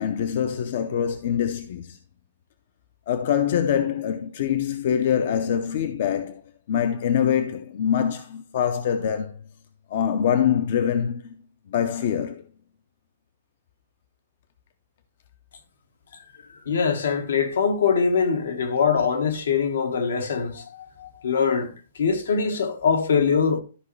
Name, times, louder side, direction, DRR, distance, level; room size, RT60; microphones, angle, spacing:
voice 1, 0.0-2.0 3.1-6.4 6.7-9.3 9.9-11.4 11.7-12.4, left 8 dB, 45° left, 0.6 m, -24 dB
voice 2, 16.7-21.7 22.0-23.6, left 6 dB, 80° left, 1.5 m, -23 dB
12.5 x 5.2 x 3.2 m
hypercardioid pair, 175°, 0 cm